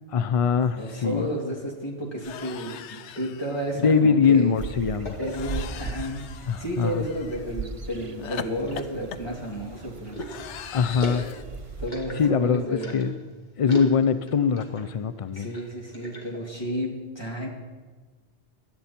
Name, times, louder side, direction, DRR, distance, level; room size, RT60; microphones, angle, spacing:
voice 1, 0.1-1.3 3.7-5.2 6.5-7.1 10.7-11.3 12.2-13.1 13.6-15.5, left 6 dB, 60° left, 11 dB, 0.3 m, -22 dB
voice 2, 0.7-4.5 5.2-6.2 6.6-10.2 11.8-13.0 15.3-17.5, equal, 20° left, -2 dB, 2.6 m, -32 dB
sound 1, 0.8-0.9 1.1-1.4 2.2-3.9 5.3-7.4 8.2-11.4, left 10 dB, 80° left, 0.9 m, -40 dB
sound 2, 2.8-4.2 5.0-5.9 6.6-7.1 7.6-7.7 8.3-9.4 10.0-13.2 13.6-14.9 15.2-16.5, equal, 40° left, 2.4 m, -38 dB
sound 3, 4.6-11.9, right 4 dB, 30° right, 0.8 m, -39 dB
18.0 x 12.0 x 4.3 m, 1.4 s
omnidirectional pair, 1.2 m